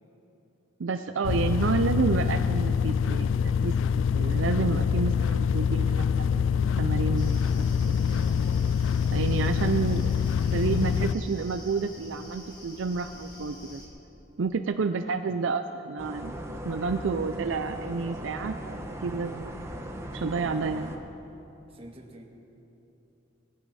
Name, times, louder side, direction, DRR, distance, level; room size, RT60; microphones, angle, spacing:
voice 1, 0.8-8.2 9.1-10.1 10.5-13.8 14.4-19.6 20.1-20.9, right 4 dB, 80° right, 8 dB, 0.5 m, -30 dB
sound 1, 1.2-11.1, left 7 dB, 80° left, 0.3 m, -25 dB
sound 2, 7.1-13.9, left 1 dB, 25° left, 2.3 m, -47 dB
voice 2, 15.0-15.4 21.7-22.2, right 1 dB, 30° right, 1 dB, 1.6 m, -48 dB
sound 3, 16.0-21.0, equal, 15° right, 1.1 m, -38 dB
19.0 x 14.5 x 4.2 m, 2.9 s
head